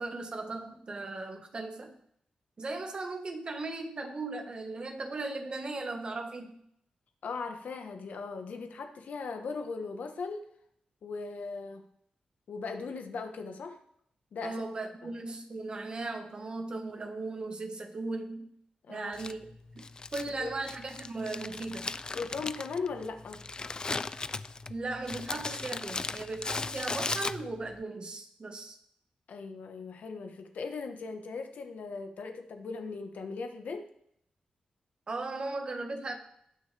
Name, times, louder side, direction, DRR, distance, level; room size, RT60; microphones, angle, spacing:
voice 1, 0.0-1.9 2.6-6.5 14.4-18.5 18.9-19.4 19.7-19.8 20.1-21.9 24.7-28.8 35.1-36.2, right 3 dB, 35° right, 4 dB, 1.5 m, -37 dB
voice 2, 7.2-10.5 11.0-11.8 12.5-13.8 14.3-14.6 15.0-15.1 18.8-19.1 20.4-20.6 22.1-23.4 29.3-33.9, left 4 dB, 75° left, 6 dB, 1.3 m, -38 dB
Crumpling crinkling, 19.1-27.8, left 3 dB, 30° left, 0.3 m, -37 dB
18.5 x 6.3 x 3.5 m, 0.70 s
wide cardioid pair, 130°, 3 cm